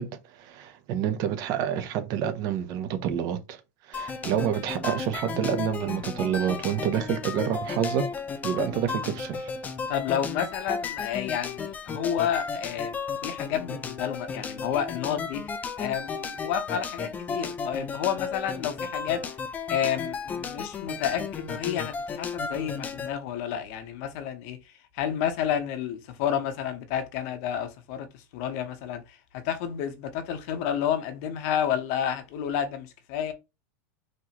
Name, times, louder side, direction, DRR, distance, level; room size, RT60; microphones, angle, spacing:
voice 1, 0.0-3.6 3.9-8.1 8.4-9.5, right 9 dB, 40° right, 0.8 m, -28 dB
sound 1, 3.9-23.1, left 5 dB, 15° left, 0.4 m, -34 dB
voice 2, 9.9-19.2 19.7-24.6 24.9-33.3, left 9 dB, 50° left, 0.9 m, -30 dB
4.3 x 3.0 x 2.9 m
supercardioid pair, 150°, 10 cm